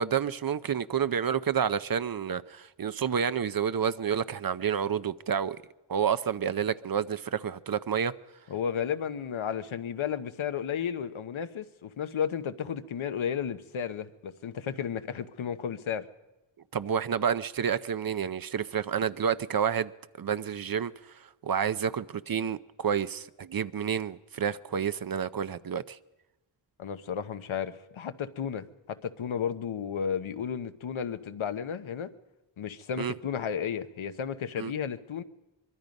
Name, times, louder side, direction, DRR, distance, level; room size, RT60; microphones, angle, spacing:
voice 1, 0.0-5.6 5.9-8.1 16.7-19.9 20.2-20.9 21.4-26.0 33.0-33.1 34.6-34.7, right 7 dB, 50° right, 0.7 m, -29 dB
voice 2, 8.5-16.0 26.8-32.1 32.6-35.2, left 8 dB, 85° left, 1.1 m, -33 dB
24.0 x 23.0 x 5.3 m
wide cardioid pair, 120°, 47 cm